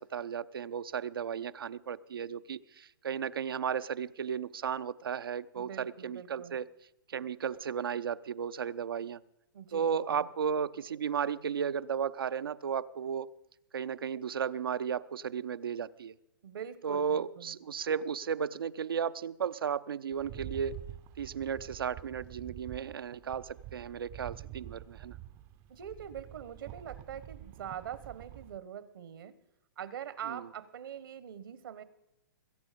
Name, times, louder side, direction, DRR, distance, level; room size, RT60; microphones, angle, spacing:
voice 1, 0.0-6.7 7.1-9.2 9.7-13.3 13.7-16.2 16.8-20.8 21.2-25.1 30.3-30.4, right 7 dB, 90° right, 0.6 m, -34 dB
voice 2, 5.5-6.6 9.5-10.3 16.4-17.5 25.7-29.3 29.8-31.8, right 9 dB, 70° right, 1.1 m, -43 dB
Rattle, 20.1-28.6, right 14 dB, 30° right, 0.5 m, -47 dB
21.5 x 8.3 x 5.1 m
hypercardioid pair, 140°, 12 cm